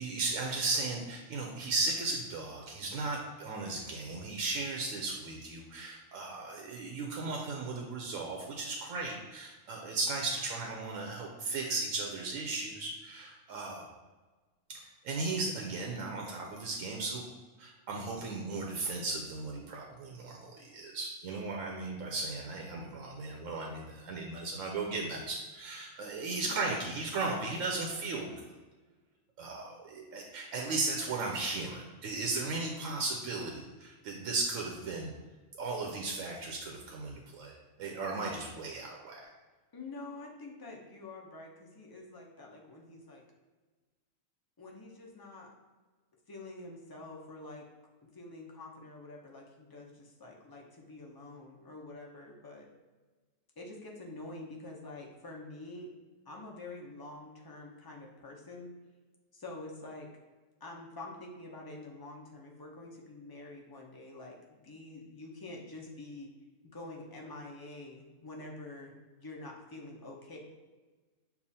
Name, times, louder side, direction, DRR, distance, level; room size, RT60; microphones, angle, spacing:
voice 1, 0.0-13.8 14.7-17.2 17.6-28.5 29.4-35.1 35.5-39.2, right 3 dB, 90° right, 0 dB, 1.0 m, -36 dB
voice 2, 26.4-26.8 39.7-43.2 44.6-45.5 46.3-47.7 48.0-52.7 53.6-55.9 56.3-58.7 59.3-60.1 60.6-66.3 66.7-70.4, left 2 dB, 30° left, -1 dB, 0.4 m, -47 dB
6.9 x 2.4 x 2.7 m, 1.3 s
omnidirectional pair, 1.3 m